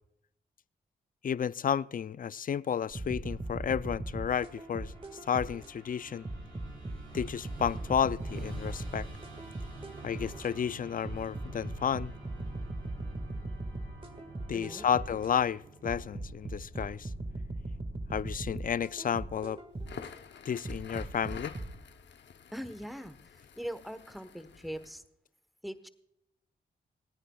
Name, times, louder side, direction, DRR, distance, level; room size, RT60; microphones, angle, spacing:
voice 1, 1.2-4.9 5.2-6.3 7.1-9.1 10.0-12.1 14.5-17.1 18.1-19.6 20.5-21.5, left 8 dB, 45° left, 0.4 m, -32 dB
sound 1, 2.9-5.7 6.2-10.5 11.0-15.3 15.8-20.1 20.6-21.7, right 1 dB, 30° right, 1.9 m, -39 dB
Musical instrument, 3.2-18.5, right 2 dB, 85° right, 4.5 m, -50 dB
voice 2, 14.5-14.9 22.5-23.2 23.6-25.0 25.6-25.9, equal, ahead, 1.2 m, -41 dB
Crackle, 19.7-25.0, left 7 dB, 70° left, 0.9 m, -49 dB
28.0 x 9.8 x 2.4 m
supercardioid pair, 45°, 19 cm